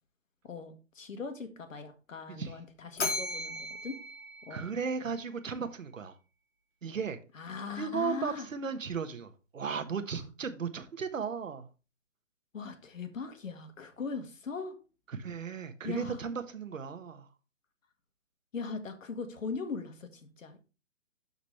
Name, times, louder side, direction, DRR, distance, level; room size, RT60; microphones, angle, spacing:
voice 1, 0.4-4.0 4.5-4.7 7.4-8.5 12.5-14.8 15.8-16.2 18.5-20.6, left 4 dB, 80° left, 7 dB, 1.7 m, -40 dB
Bell, 3.0-5.3, left 3 dB, 60° left, 3.1 m, -37 dB
voice 2, 4.5-6.2 6.8-7.2 7.8-11.7 15.1-17.3, right 5 dB, 85° right, 9 dB, 1.3 m, -36 dB
12.0 x 4.1 x 3.2 m, 0.32 s
hypercardioid pair, 145°, 39 cm